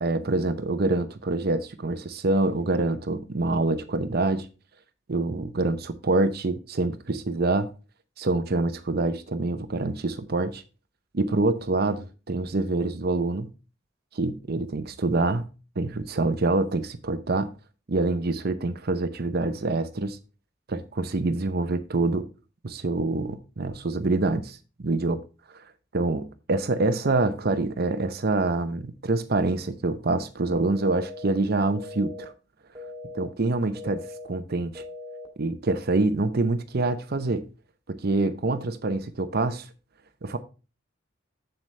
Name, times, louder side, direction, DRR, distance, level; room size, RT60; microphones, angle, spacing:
voice 1, 0.0-4.5 5.1-7.7 8.2-10.6 11.1-13.5 14.1-15.5 15.8-17.5 17.9-20.2 20.7-22.2 22.6-25.2 25.9-32.3 33.1-34.0 34.3-34.8 35.4-37.4 37.9-39.7 40.2-40.4, right 2 dB, 55° right, 0.7 m, -26 dB
sound 1, 30.8-31.3 31.8-32.3 32.8-33.3 33.8-34.3 34.8-35.3, left 2 dB, 15° right, 2.1 m, -40 dB
7.9 x 7.5 x 3.2 m
head